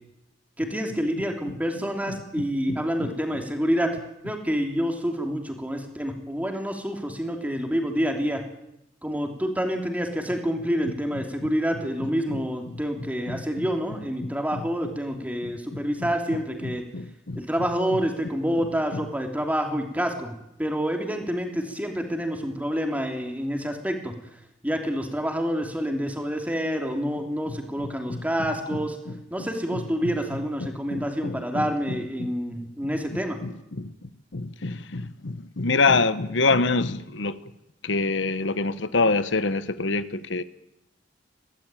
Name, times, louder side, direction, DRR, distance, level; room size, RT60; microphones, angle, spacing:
voice 1, 0.6-4.0 4.2-8.4 9.0-16.8 17.3-24.1 24.6-29.0 29.3-33.4, equal, 10° right, 3 dB, 3.2 m, -28 dB
voice 2, 2.1-3.1 12.0-12.4 13.3-13.7 14.2-14.6 15.4-16.1 16.6-17.4 28.1-28.2 29.1-29.2 29.7-30.1 30.9-32.3 33.1-33.9 34.3-37.4 37.8-40.4, left 3 dB, 75° left, 13 dB, 1.1 m, -27 dB
23.0 x 17.5 x 9.1 m, 0.86 s
head